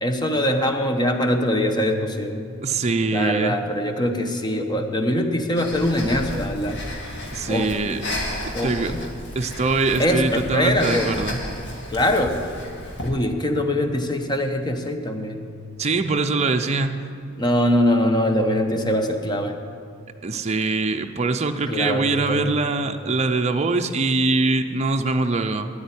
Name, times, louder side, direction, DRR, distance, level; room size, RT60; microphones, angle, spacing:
voice 1, 0.0-2.5 3.1-6.8 7.5-7.8 8.5-9.0 10.0-11.1 11.9-12.4 13.0-15.5 17.4-19.6 21.7-22.6, left 1 dB, 20° left, 5 dB, 0.9 m, -23 dB
voice 2, 2.6-3.6 7.3-8.0 8.4-9.1 9.4-11.4 15.8-17.0 20.2-25.7, right 3 dB, 30° right, 5 dB, 0.6 m, -23 dB
Breathing, 5.6-13.1, left 1 dB, 55° left, 1.8 m, -33 dB
9.3 x 8.6 x 9.8 m, 2.3 s
head